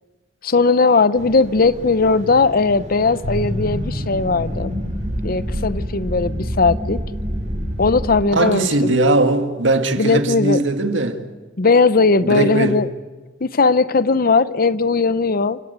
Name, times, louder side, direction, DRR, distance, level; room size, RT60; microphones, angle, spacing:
voice 1, 0.4-4.7 5.2-7.0 7.8-9.0 10.0-10.6 11.6-12.9 13.4-15.6, left 4 dB, 50° left, 0.8 m, -18 dB
sound 1, 1.2-8.2, equal, 40° right, 3.8 m, -27 dB
voice 2, 8.3-11.2 12.2-12.8, right 2 dB, 70° right, 2.0 m, -19 dB
30.0 x 17.0 x 8.2 m
head